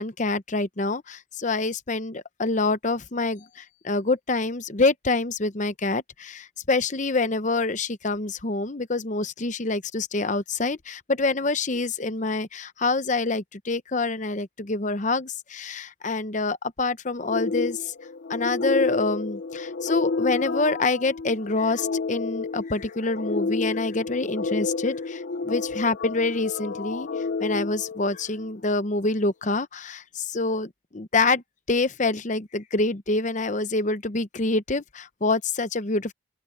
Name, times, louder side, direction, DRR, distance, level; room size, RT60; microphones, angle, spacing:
voice 1, 0.0-17.9 18.3-27.1 27.4-36.1, left 3 dB, 40° left, 0.8 m, -26 dB
sound 1, 17.3-28.6, left 4 dB, 60° left, 0.5 m, -30 dB
open air
head